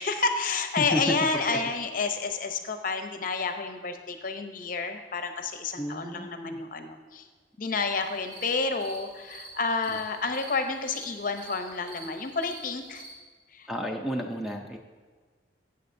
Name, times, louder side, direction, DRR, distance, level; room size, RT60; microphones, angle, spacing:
voice 1, 0.0-7.3 7.6-13.0 13.5-13.7, left 4 dB, 45° left, 7 dB, 0.7 m, -30 dB
voice 2, 0.8-1.1 1.5-1.6 5.8-6.6 13.7-14.8, equal, ahead, 2 dB, 0.5 m, -32 dB
sound 1, 7.9-13.1, right 2 dB, 65° right, 2.9 m, -47 dB
13.0 x 8.1 x 2.6 m, 1.5 s
head